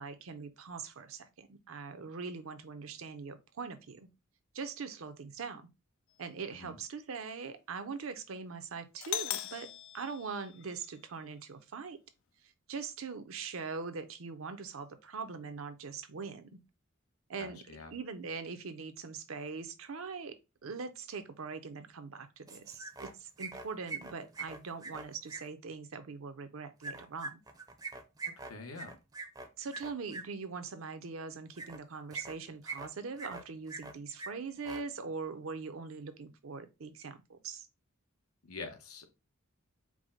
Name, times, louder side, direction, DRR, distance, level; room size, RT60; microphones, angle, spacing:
voice 1, 0.0-4.1 4.5-5.7 6.2-9.7 9.9-12.0 12.7-16.5 17.3-17.6 17.9-20.4 20.6-27.4 29.6-37.7, right 5 dB, 70° right, 0.6 m, -42 dB
Doorbell, 9.0-11.0, left 12 dB, 60° left, 0.3 m, -39 dB
voice 2, 17.4-17.9 28.5-29.0 38.4-39.1, left 4 dB, 85° left, 0.9 m, -45 dB
sound 1, 22.5-23.1 23.4-25.4 26.8-30.2 31.5-31.8 32.1-32.9 33.2-33.9 34.2-34.3 34.6-34.8, right 3 dB, 20° right, 0.5 m, -42 dB
4.7 x 2.1 x 3.7 m
head